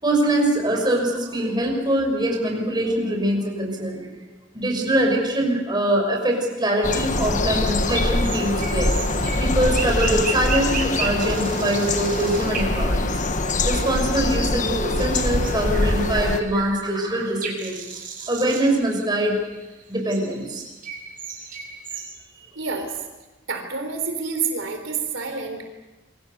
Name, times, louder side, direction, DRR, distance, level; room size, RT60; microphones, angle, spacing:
voice 1, 0.0-4.1 4.5-13.1 13.6-17.8 18.3-19.4 19.9-20.6, right 1 dB, 20° right, 2 dB, 6.1 m, -23 dB
sound 1, 6.8-16.4, left 2 dB, 40° left, 1.5 m, -24 dB
sound 2, 7.4-14.5 14.7-22.1, right 5 dB, 45° right, 6.7 m, -35 dB
voice 2, 22.6-22.9 23.5-25.6, right 5 dB, 80° right, 5 dB, 3.9 m, -28 dB
27.5 x 24.0 x 6.8 m, 1.1 s
head